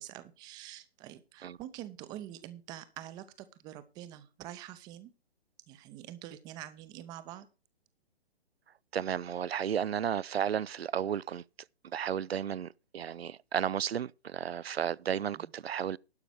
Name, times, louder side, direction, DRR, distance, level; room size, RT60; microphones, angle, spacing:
voice 1, 0.0-5.1 5.7-7.5 15.3-15.5, right 13 dB, 15° right, 0.6 m, -46 dB
voice 2, 8.9-11.4 11.9-16.0, right 9 dB, 75° right, 0.5 m, -33 dB
11.5 x 5.9 x 6.5 m
figure-of-eight pair, 130°, 31 cm